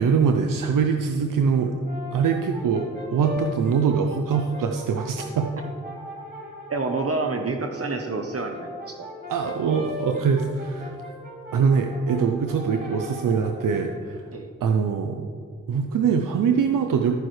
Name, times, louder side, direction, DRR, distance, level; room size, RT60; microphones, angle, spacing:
voice 1, 0.0-1.8 2.1-5.5 9.3-11.0 11.5-14.3 14.6-15.2 15.7-17.1, right 6 dB, 85° right, 4 dB, 0.6 m, -23 dB
Brass instrument, 1.6-7.1 8.1-13.9, left 2 dB, 30° right, 3.1 m, -39 dB
voice 2, 6.7-9.1 14.3-14.5, right 3 dB, 50° right, 3 dB, 1.0 m, -28 dB
15.0 x 9.3 x 3.3 m, 2.2 s
cardioid pair, 50°, 32 cm